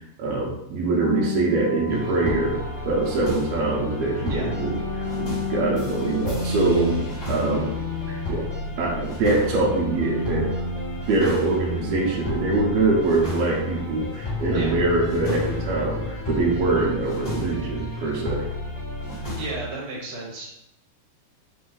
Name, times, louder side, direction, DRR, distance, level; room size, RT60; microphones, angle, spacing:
voice 1, 0.2-2.6 2.8-7.7 8.1-8.4 8.8-10.5 11.1-18.5, right 3 dB, 80° right, -2 dB, 1.4 m, -24 dB
sound 1, 1.0-3.4 4.0-8.9 9.1-14.1, left 2 dB, 30° right, 0.6 m, -33 dB
Wind instrument woodwind instrument, 1.9-6.4, left 4 dB, 80° left, 2.2 m, -41 dB
sound 2, 1.9-19.6, left 2 dB, 35° left, 1.9 m, -32 dB
voice 2, 4.3-4.7 14.5-14.7 19.4-20.5, right 3 dB, 65° right, -2 dB, 2.1 m, -33 dB
5.1 x 2.6 x 3.8 m, 0.80 s
omnidirectional pair, 3.8 m